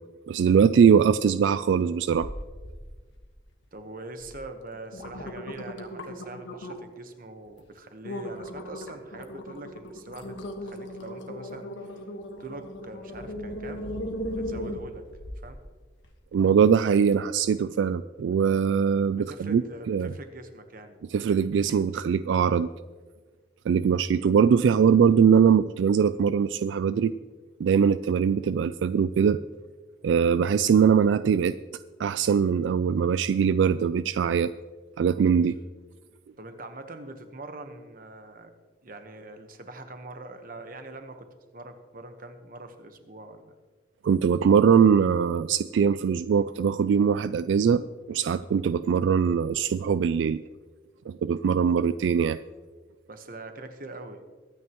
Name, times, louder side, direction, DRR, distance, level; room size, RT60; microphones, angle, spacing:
voice 1, 0.3-2.3 16.3-19.6 19.9-20.1 21.1-22.7 23.7-27.1 27.6-29.4 30.0-31.6 32.0-34.5 35.0-35.6 44.0-47.8 48.1-50.4 51.1-52.4, right 7 dB, 80° right, 14 dB, 0.3 m, -22 dB
sound 1, 2.1-2.8 3.1-3.6 4.2-4.3 4.7-7.0 7.5-7.6 8.0-15.5 16.0-16.1, equal, 85° left, 1.5 m, -37 dB
voice 2, 3.7-12.0 12.4-13.9 14.3-15.1 15.4-15.6 19.2-21.0 36.4-38.5 38.8-41.3 41.5-43.5 53.1-54.2, right 2 dB, 50° right, 7 dB, 1.1 m, -43 dB
22.5 x 9.5 x 3.0 m, 1.4 s
head